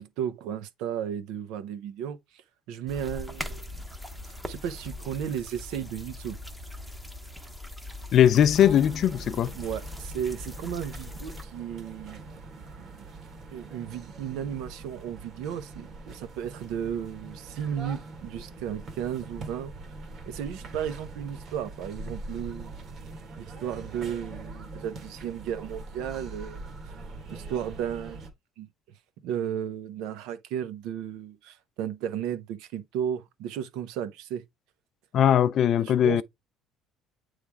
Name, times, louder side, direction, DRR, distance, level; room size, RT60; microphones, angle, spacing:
voice 1, 0.0-2.4 2.7-3.8 4.3-6.4 9.4-12.3 12.8-13.1 13.5-19.7 20.3-22.8 23.4-26.6 27.3-28.2 28.6-28.7 29.2-34.4 35.8-36.2, right 9 dB, 80° right, 0.7 m, -34 dB
sound 1, 2.9-11.4, left 1 dB, 5° right, 0.7 m, -40 dB
voice 2, 8.1-9.5 35.1-36.2, left 10 dB, 45° left, 0.4 m, -20 dB
sound 2, 8.5-28.3, right 3 dB, 40° right, 1.3 m, -43 dB
8.4 x 3.3 x 3.4 m
cardioid pair, 150°, 0 cm